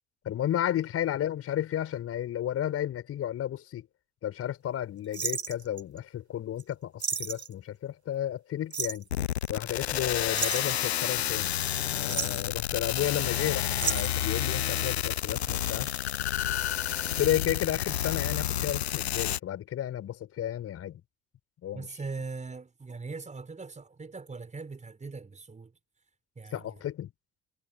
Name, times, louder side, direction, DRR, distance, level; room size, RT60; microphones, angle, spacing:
voice 1, 0.2-3.9 4.2-9.1 9.5-11.5 11.9-15.9 17.2-21.0 21.6-21.9 26.5-27.1, left 11 dB, 45° left, 5.0 m, -32 dB
sound 1, 5.1-6.0 6.6-6.7 7.0-7.5 8.7-9.1 10.3-11.4 11.9-12.5 13.8-14.3 15.3-15.7 16.0-16.1, right 5 dB, 85° right, 2.0 m, -33 dB
sound 2, 9.1-19.4, left 11 dB, 80° left, 0.6 m, -30 dB
voice 2, 21.7-25.7 26.4-26.8, right 4 dB, 20° right, 5.6 m, -40 dB
figure-of-eight pair, 55°, 32 cm